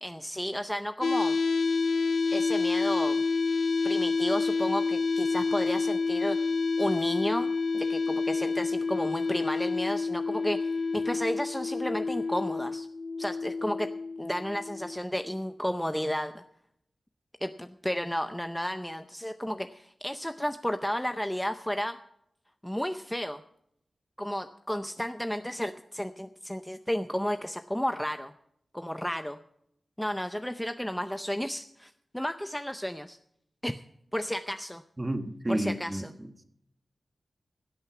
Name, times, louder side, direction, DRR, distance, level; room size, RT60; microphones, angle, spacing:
voice 1, 0.0-1.4 2.3-3.2 3.8-6.4 6.8-12.9 13.2-13.9 14.2-16.4 17.4-22.0 22.6-23.4 24.2-28.3 28.7-29.4 30.0-33.2 33.6-33.8 34.1-34.8 35.5-36.0, equal, 5° left, 9 dB, 0.5 m, -32 dB
sound 1, 1.0-15.0, left 4 dB, 60° left, 0.5 m, -28 dB
voice 2, 35.0-36.4, right 1 dB, 20° right, 9 dB, 1.3 m, -32 dB
16.0 x 8.7 x 5.9 m, 0.74 s
wide cardioid pair, 120°, 0 cm